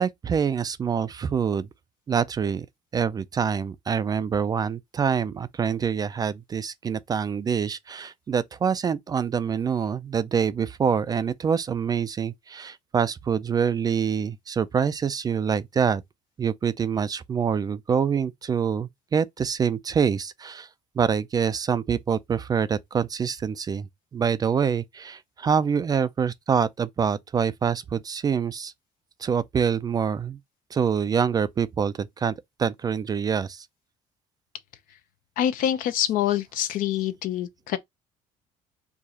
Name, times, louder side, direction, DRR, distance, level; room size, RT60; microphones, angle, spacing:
voice 1, 0.0-1.7 2.1-2.7 2.9-16.0 16.4-20.7 21.0-28.7 29.2-30.4 30.7-33.7, right 7 dB, 25° right, 0.3 m, -25 dB
voice 2, 35.4-37.8, left 11 dB, 65° left, 0.8 m, -25 dB
4.7 x 2.4 x 4.0 m
cardioid pair, 130°, 15 cm